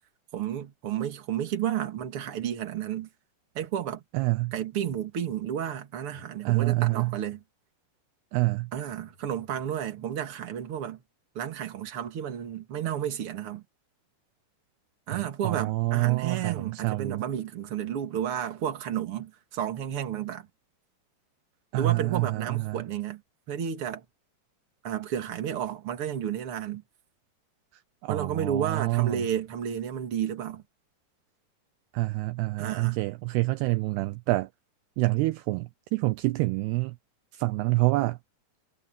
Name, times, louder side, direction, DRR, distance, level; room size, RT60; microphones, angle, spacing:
voice 1, 0.3-3.1 3.5-4.0 4.5-7.4 8.7-11.0 11.3-13.6 15.1-20.5 21.7-23.2 23.5-24.0 24.8-26.8 28.1-30.6 32.6-33.0, right 9 dB, 40° right, 2.4 m, -32 dB
voice 2, 4.1-4.5 6.5-7.2 8.3-8.7 15.1-17.2 21.7-22.8 27.7-29.3 31.9-34.5 35.0-37.0 37.3-38.2, right 22 dB, 80° right, 2.5 m, -27 dB
omnidirectional pair, 5.0 m